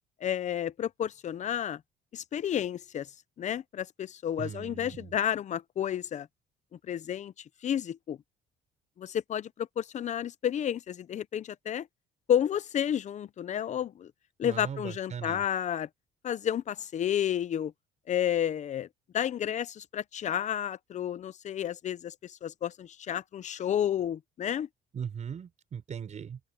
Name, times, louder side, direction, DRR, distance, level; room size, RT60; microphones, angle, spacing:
voice 1, 0.2-1.8 2.1-3.1 3.4-6.3 6.9-7.3 7.6-8.2 9.0-11.9 12.3-14.1 14.4-15.9 16.2-17.7 18.1-18.9 19.1-24.7, left 10 dB, 45° left, 0.8 m, -31 dB
voice 2, 4.4-5.1 14.4-15.4 24.9-26.4, right 7 dB, 45° right, 5.6 m, -39 dB
open air
cardioid pair, 110°, 17 cm